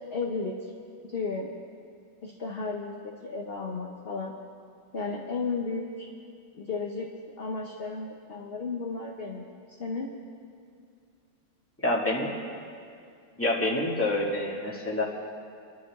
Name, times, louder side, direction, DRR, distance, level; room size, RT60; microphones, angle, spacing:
voice 1, 0.1-0.6 1.1-1.5 2.2-4.3 4.9-6.1 6.5-7.1 7.4-9.5 9.8-10.2, left 4 dB, 40° left, -1 dB, 0.9 m, -33 dB
voice 2, 11.8-12.3 13.4-15.0, left 1 dB, 5° left, -4 dB, 2.0 m, -27 dB
27.0 x 11.5 x 3.6 m, 2.3 s
omnidirectional pair, 2.2 m